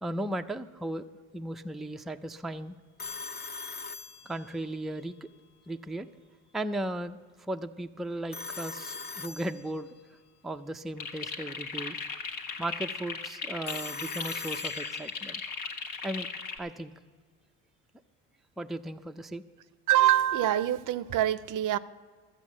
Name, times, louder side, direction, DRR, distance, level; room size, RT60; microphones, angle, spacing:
voice 1, 0.0-1.1 1.3-2.7 4.2-5.3 5.7-6.1 6.5-10.0 10.4-12.0 12.6-15.4 16.0-16.3 16.6-16.9 18.6-19.4, right 1 dB, ahead, 6 dB, 0.5 m, -36 dB
Telephone, 3.0-4.8 8.3-10.0 13.6-15.3, left 4 dB, 25° left, 0.8 m, -41 dB
sound 1, 11.0-16.6, left 5 dB, 70° left, 1.6 m, -37 dB
voice 2, 19.9-21.8, right 12 dB, 55° right, 16 dB, 0.6 m, -25 dB
13.0 x 7.9 x 7.3 m, 1.6 s
supercardioid pair, 80°, 37 cm